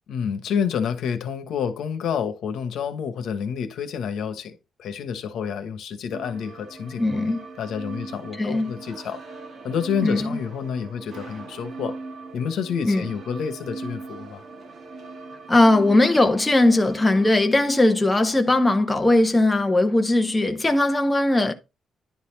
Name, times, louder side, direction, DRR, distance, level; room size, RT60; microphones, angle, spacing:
voice 1, 0.1-4.5 4.8-9.2 9.6-12.0 12.3-14.4, left 7 dB, 75° left, 1.2 m, -29 dB
sound 1, 6.1-17.5, right 3 dB, 50° right, 1.8 m, -40 dB
voice 2, 7.0-7.4 8.4-8.8 10.0-10.4 12.8-13.1 15.5-21.5, left 2 dB, 10° left, 0.7 m, -19 dB
10.5 x 4.2 x 4.1 m
cardioid pair, 170°, 0 cm